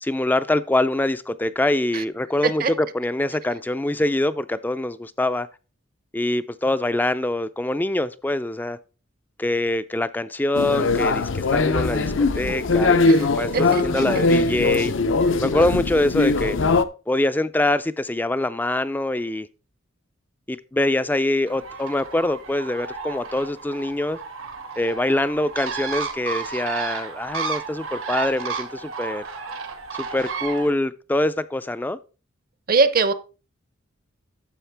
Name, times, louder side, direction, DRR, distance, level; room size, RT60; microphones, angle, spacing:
voice 1, 0.0-2.6 2.9-5.5 6.1-8.8 9.4-14.9 15.4-16.6 17.1-19.5 20.5-24.2 24.8-29.3 29.9-32.0, left 1 dB, 10° left, 0.3 m, -24 dB
sound 1, 10.5-16.8, left 3 dB, 70° left, 0.6 m, -21 dB
voice 2, 13.0-14.1 32.7-33.1, right 4 dB, 45° right, 0.7 m, -22 dB
Bird, 21.5-30.7, right 5 dB, 90° right, 1.7 m, -32 dB
10.0 x 7.3 x 3.4 m
head